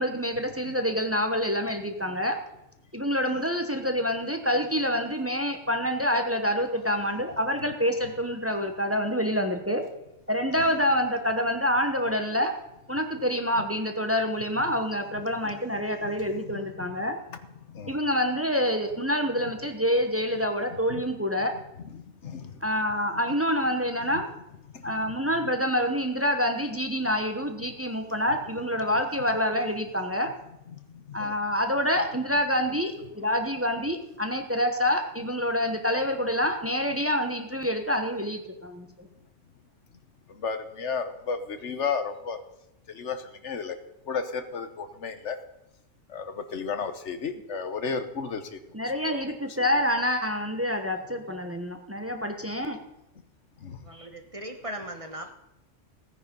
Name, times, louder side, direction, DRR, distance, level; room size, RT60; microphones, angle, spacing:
voice 1, 0.0-2.4 2.9-9.8 10.3-12.5 12.9-17.2 17.9-21.5 22.6-24.3 24.8-30.3 31.1-39.1 48.7-52.8, equal, 10° right, 5 dB, 1.1 m, -27 dB
voice 2, 21.9-22.4 24.1-24.2 31.2-31.3 40.4-42.4 43.0-43.2 43.4-43.7 44.1-45.4 46.1-46.2 46.5-48.4 49.1-49.2 53.6-53.8, left 5 dB, 70° left, 9 dB, 1.3 m, -32 dB
voice 3, 53.8-55.3, right 1 dB, 30° right, 5 dB, 1.2 m, -38 dB
16.5 x 9.7 x 5.4 m, 0.87 s
omnidirectional pair, 1.3 m